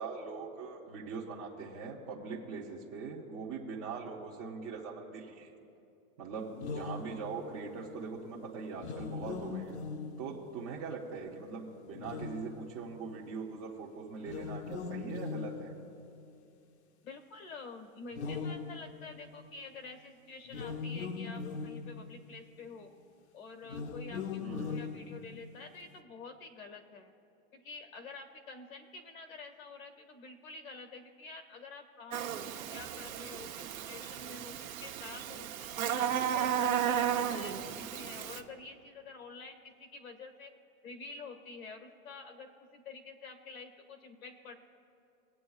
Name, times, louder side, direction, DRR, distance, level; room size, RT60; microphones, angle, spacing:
voice 1, 0.0-5.5 6.2-9.7 10.2-15.7 24.4-24.8 37.1-37.4, right 4 dB, 20° right, -8 dB, 0.9 m, -42 dB
sound 1, 6.5-7.6 8.7-10.7 11.9-13.0 14.2-16.3 18.1-19.5 20.5-22.4 23.6-25.6, left 5 dB, 55° left, 0.8 m, -40 dB
voice 2, 17.0-22.9 23.3-27.1 27.5-35.5 35.8-40.5 40.8-44.6, left 4 dB, 75° left, 5 dB, 1.8 m, -48 dB
Buzz, 32.1-38.4, right 9 dB, 75° right, 1.0 m, -34 dB
23.5 x 8.9 x 2.4 m, 2.7 s
hypercardioid pair, 170°, 42 cm